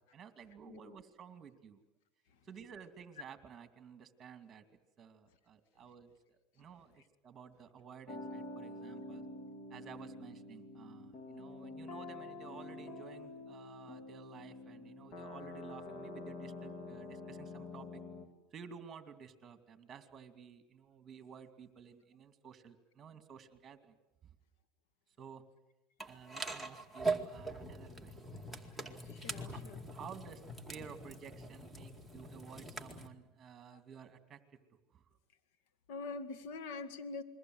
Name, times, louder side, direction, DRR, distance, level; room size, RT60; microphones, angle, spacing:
voice 1, 0.0-1.8 2.4-9.3 9.7-18.0 18.5-24.0 24.2-24.3 25.2-25.4 26.0-28.5 29.3-29.6 29.9-30.4 30.7-34.4 34.9-35.1, right 7 dB, 25° right, 8 dB, 2.6 m, -53 dB
voice 2, 0.7-1.0 29.0-29.8 33.7-33.8 35.9-37.2, left 3 dB, 70° left, 9 dB, 2.2 m, -44 dB
sound 1, 8.1-18.3, left 2 dB, 50° left, 3.5 m, -47 dB
sound 2, 26.0-33.1, right 3 dB, ahead, 2.2 m, -42 dB
28.5 x 22.0 x 7.9 m, 0.95 s
supercardioid pair, 125°, 0 cm